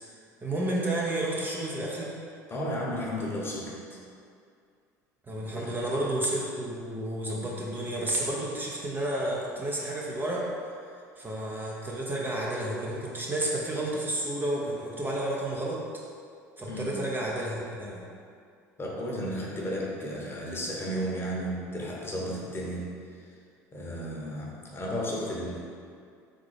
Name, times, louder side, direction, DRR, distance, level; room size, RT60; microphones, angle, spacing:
voice 1, 0.4-2.1 5.3-10.5 11.2-15.8 16.6-18.0, right 1 dB, 20° right, -4 dB, 0.7 m, -31 dB
voice 2, 2.5-4.0 5.5-5.7 16.7-17.0 18.8-23.3 23.7-25.6, equal, 25° left, -4 dB, 1.0 m, -33 dB
3.7 x 3.6 x 3.3 m, 2.3 s
hypercardioid pair, 70°, 9 cm